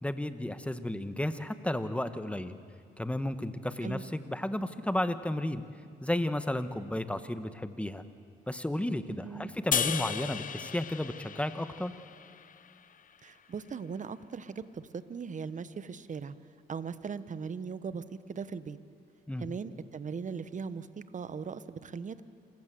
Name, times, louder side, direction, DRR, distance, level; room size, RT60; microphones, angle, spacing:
voice 1, 0.0-2.6 3.0-5.6 6.0-8.0 8.5-11.9 19.3-19.5, left 1 dB, 5° left, 11 dB, 1.3 m, -33 dB
voice 2, 9.1-9.5 13.2-16.3 16.7-18.8 19.4-20.9 21.1-22.2, right 5 dB, 40° right, 14 dB, 1.0 m, -39 dB
sound 1, 9.7-13.0, left 8 dB, 45° left, 0.7 m, -35 dB
27.5 x 15.0 x 7.6 m, 2.2 s
supercardioid pair, 70°, 19 cm